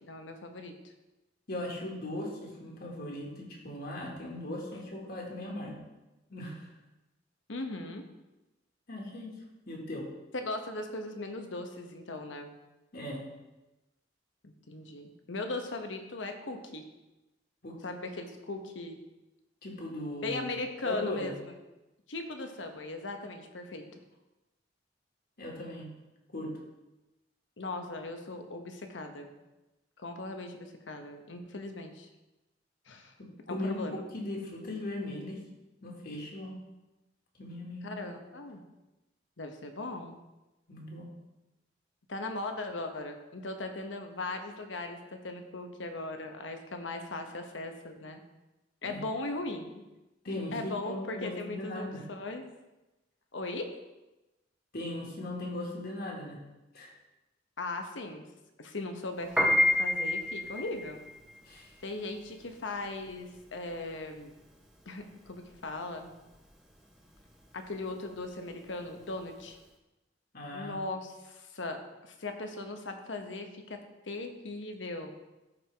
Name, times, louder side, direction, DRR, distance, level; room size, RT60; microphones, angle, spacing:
voice 1, 0.0-0.7 7.5-8.0 10.3-12.5 14.4-16.8 17.8-19.0 20.2-21.4 22.1-23.9 27.6-29.4 30.0-32.1 32.9-33.1 33.5-34.0 37.8-38.6 39.4-40.2 42.1-48.2 48.8-49.8 50.3-52.4 53.3-53.7 57.6-58.3 58.6-61.0 61.8-64.3 64.9-66.1 67.5-69.6 70.5-75.1, left 2 dB, 85° left, 5 dB, 1.0 m, -38 dB
voice 2, 1.5-5.8 6.3-6.7 8.9-9.3 9.7-10.1 12.9-13.2 17.6-17.8 19.6-21.3 25.4-25.9 26.3-26.6 33.2-35.4 35.8-36.6 37.4-37.9 40.7-41.1 48.8-49.0 50.2-52.0 54.7-56.4 56.7-56.9 61.5-61.7 70.3-70.8, left 1 dB, 55° left, -2 dB, 1.9 m, -38 dB
Piano, 59.2-69.6, left 1 dB, 5° right, 0.9 m, -31 dB
14.0 x 4.7 x 3.4 m, 1.0 s
head